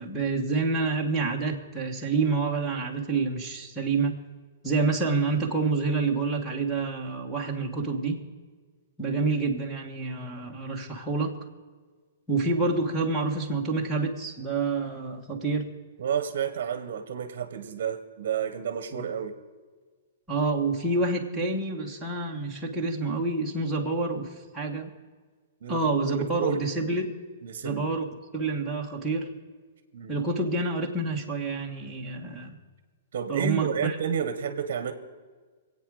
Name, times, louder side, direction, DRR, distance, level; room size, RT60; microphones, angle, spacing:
voice 1, 0.0-4.1 4.6-8.2 9.0-11.4 12.3-15.7 18.9-19.1 20.3-24.9 25.7-27.1 27.6-28.0 28.3-29.3 30.1-32.5 33.3-34.0, right 3 dB, 5° right, -4 dB, 1.5 m, -28 dB
voice 2, 16.0-19.3 25.6-26.6 27.4-27.9 29.9-30.2 33.1-34.9, right 8 dB, 45° right, 10 dB, 1.2 m, -31 dB
26.0 x 8.7 x 4.9 m, 1.5 s
hypercardioid pair, 175°, 0 cm